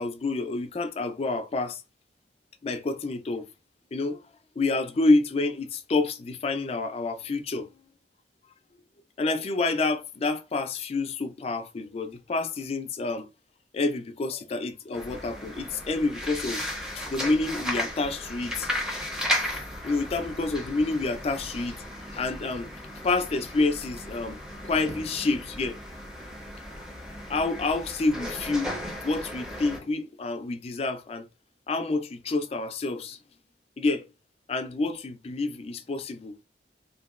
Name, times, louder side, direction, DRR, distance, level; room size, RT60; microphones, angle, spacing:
voice 1, 0.0-1.8 2.6-3.5 3.9-4.2 4.6-7.7 9.2-13.3 13.7-16.6 16.9-18.7 19.5-21.8 22.1-22.7 23.0-24.4 24.6-25.8 27.3-28.8 29.0-31.3 31.7-33.2 33.8-34.1 34.5-36.3, left 3 dB, 35° left, 0.3 m, -28 dB
sound 1, 14.9-29.8, equal, 5° right, 0.6 m, -35 dB
2.9 x 2.6 x 2.3 m
head